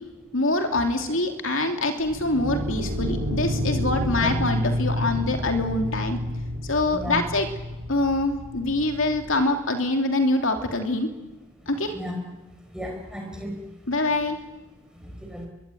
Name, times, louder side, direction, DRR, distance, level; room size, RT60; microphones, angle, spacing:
voice 1, 0.3-6.2 6.6-7.5 7.9-11.1 11.7-11.9 13.9-14.4, left 2 dB, 60° left, 5 dB, 2.8 m, -24 dB
sound 1, 2.0-9.3, left 1 dB, 85° right, 5.7 m, -29 dB
voice 2, 6.9-7.2 11.9-12.1 12.7-13.5 15.0-15.5, equal, 5° right, 2 dB, 5.0 m, -34 dB
23.0 x 22.0 x 9.3 m, 1.1 s
head